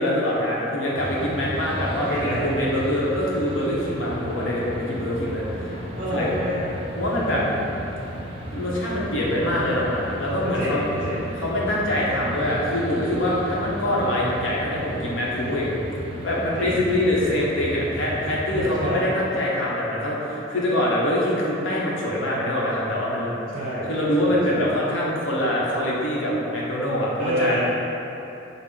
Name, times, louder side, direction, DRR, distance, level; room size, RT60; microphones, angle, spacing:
voice 1, 0.0-5.8 6.1-6.3 7.0-7.4 8.5-10.8 11.4-15.7 16.2-23.4 23.9-27.6, left 1 dB, 75° left, -5 dB, 0.8 m, -24 dB
sound 1, 1.0-18.9, right 1 dB, 30° right, 0.5 m, -34 dB
voice 2, 2.1-2.5 5.9-6.7 7.1-7.5 10.4-11.3 16.6-16.8 18.5-19.1 23.5-23.9 24.2-24.8 27.2-27.6, equal, 55° right, -10 dB, 1.0 m, -28 dB
5.6 x 2.0 x 3.7 m, 3.0 s
head